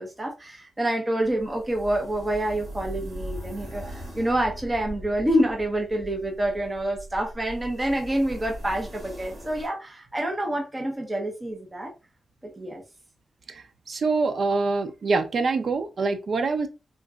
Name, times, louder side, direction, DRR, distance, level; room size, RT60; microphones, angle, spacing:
voice 1, 0.0-11.9 12.6-12.8, right 1 dB, 20° right, 0.8 m, -27 dB
sound 1, 1.2-9.7, equal, 85° right, 2.0 m, -40 dB
voice 2, 13.5-16.7, right 3 dB, 55° right, 0.5 m, -25 dB
3.8 x 2.9 x 2.4 m
wide cardioid pair, 140°, 0 cm